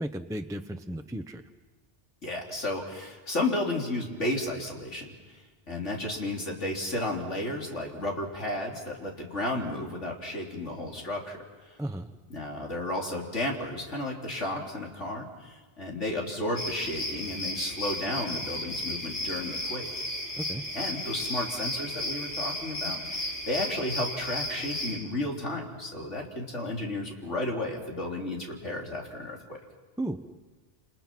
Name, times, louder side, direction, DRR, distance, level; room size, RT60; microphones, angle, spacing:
voice 1, 0.0-1.4 11.8-12.1 20.4-20.6 30.0-30.2, right 1 dB, 5° right, 6 dB, 0.7 m, -34 dB
voice 2, 2.2-5.4 5.7-11.4 11.7-11.8 12.3-19.9 20.7-29.6, left 1 dB, 85° left, -1 dB, 3.8 m, -33 dB
sound 1, 16.5-25.0, left 1 dB, 70° left, 3.9 m, -34 dB
29.0 x 28.5 x 6.0 m, 1.3 s
omnidirectional pair, 1.2 m